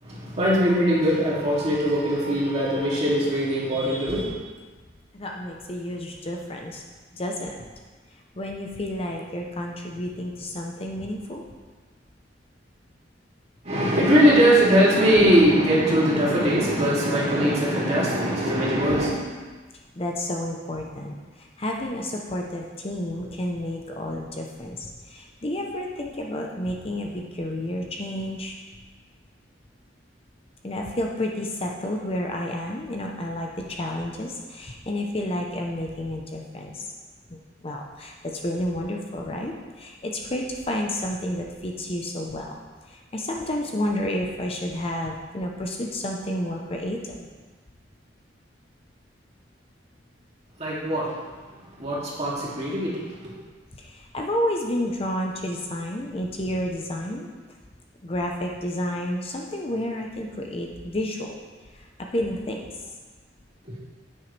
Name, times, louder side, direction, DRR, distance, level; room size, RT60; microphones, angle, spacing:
voice 1, 0.0-4.3 13.6-19.2 50.6-51.2 51.8-53.4 63.6-63.8, equal, 35° right, -6 dB, 2.6 m, -21 dB
voice 2, 5.1-6.8 7.1-7.7 8.3-11.4 20.0-28.5 30.6-36.9 37.3-42.5 42.9-47.3 53.7-57.3 58.0-61.4 61.8-62.7, left 1 dB, 30° left, 0 dB, 0.8 m, -30 dB
10.0 x 8.9 x 3.3 m, 1.4 s
head